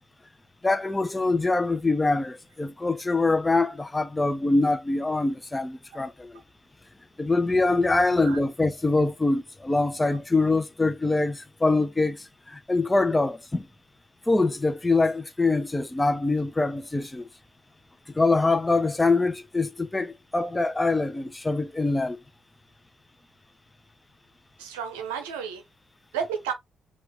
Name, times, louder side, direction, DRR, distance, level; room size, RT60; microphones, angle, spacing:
voice 1, 0.6-6.4 7.2-13.7 14.3-17.3 18.1-22.2, left 3 dB, 20° left, 0.7 m, -24 dB
voice 2, 8.0-8.4 24.6-25.6 26.1-26.5, right 7 dB, 80° right, 0.6 m, -32 dB
6.0 x 2.5 x 3.1 m
figure-of-eight pair, 40°, 0 cm